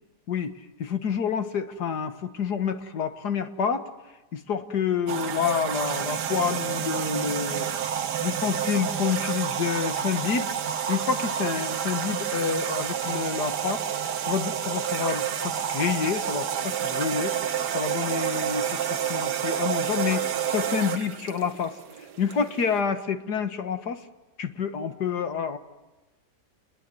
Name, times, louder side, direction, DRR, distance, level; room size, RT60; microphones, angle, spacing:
voice 1, 0.3-3.9 4.3-7.7 8.2-10.5 10.9-13.8 14.2-21.8 22.2-24.0 24.4-25.6, left 7 dB, 70° left, 8 dB, 2.1 m, -28 dB
sound 1, 5.1-22.8, right 9 dB, 75° right, 1.7 m, -29 dB
29.5 x 22.0 x 7.9 m, 1.1 s
omnidirectional pair, 1.8 m